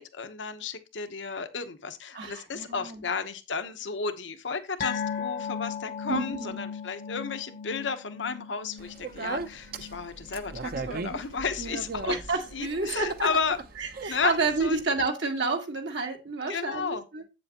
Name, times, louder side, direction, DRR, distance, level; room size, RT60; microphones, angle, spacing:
voice 1, 0.0-12.1 12.5-13.6 14.1-14.8 16.5-17.0, left 5 dB, 85° left, 1.0 m, -33 dB
voice 2, 2.1-3.0 6.1-6.6 12.0-13.3 13.8-17.2, right 3 dB, 75° right, 1.9 m, -30 dB
sound 1, 4.8-11.6 11.9-12.1 12.5-12.6, left 7 dB, 55° left, 0.7 m, -37 dB
Speech, 8.8-14.8, right 3 dB, 55° right, 0.7 m, -38 dB
8.2 x 7.5 x 2.9 m
head